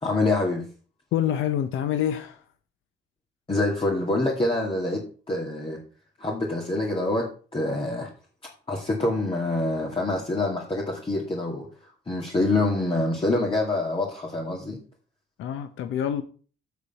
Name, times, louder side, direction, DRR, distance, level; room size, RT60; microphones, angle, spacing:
voice 1, 0.0-0.6 3.5-5.8 6.2-8.1 8.7-11.7 12.1-14.8, left 2 dB, 25° left, 2.4 m, -26 dB
voice 2, 1.1-2.4 15.4-16.2, left 10 dB, 85° left, 0.9 m, -26 dB
8.3 x 7.0 x 5.6 m
cardioid pair, 90°, 20 cm